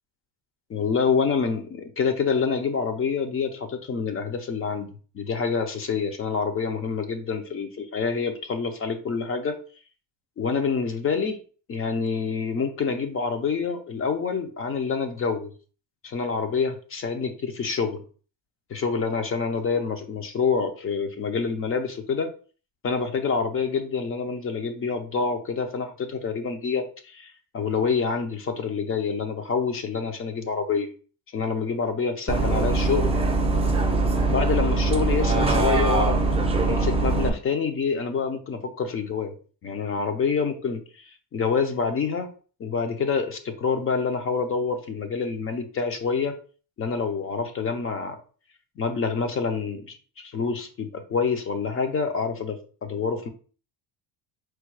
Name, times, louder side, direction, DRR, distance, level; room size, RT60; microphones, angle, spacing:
voice 1, 0.7-4.9 5.1-9.6 10.4-11.4 11.7-15.5 16.0-18.0 18.7-22.3 22.8-30.9 31.3-33.1 34.3-36.2 36.7-39.3 39.6-41.0 41.3-42.3 42.6-46.4 46.8-48.2 48.8-49.9 50.2-53.3, left 5 dB, 30° left, 8 dB, 0.6 m, -27 dB
Bus, 32.3-37.3, right 3 dB, 15° right, 0.6 m, -22 dB
4.6 x 2.3 x 4.6 m, 0.40 s
cardioid pair, 140°, 44 cm